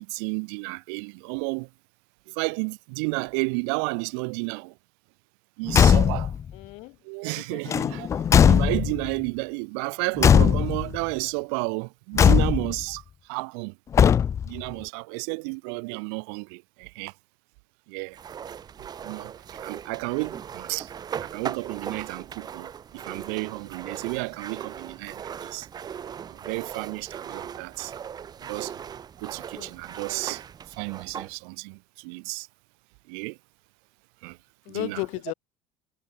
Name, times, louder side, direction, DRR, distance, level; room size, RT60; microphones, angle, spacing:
voice 1, 0.0-1.7 2.3-4.7 5.6-6.3 7.0-8.1 8.4-13.0 13.3-13.7 14.4-17.1 17.9-18.2 19.0-20.9 21.2-25.7 26.3-27.9 28.4-28.8 29.2-30.4 30.8-32.5 33.1-33.4 34.2-34.4 34.7-35.1, right 39 dB, 75° right, 1.5 m, -32 dB
Car / Truck / Slam, 5.7-6.4 7.7-9.1 10.2-11.0 12.2-12.8 13.9-14.6, left 8 dB, 25° left, 0.3 m, -19 dB
voice 2, 6.5-6.9 7.5-7.7 29.6-29.7 34.7-35.3, left 25 dB, 65° left, 0.9 m, -33 dB
sound 1, 18.1-31.3, right 8 dB, 30° right, 3.1 m, -39 dB
supercardioid pair, 120°, 13 cm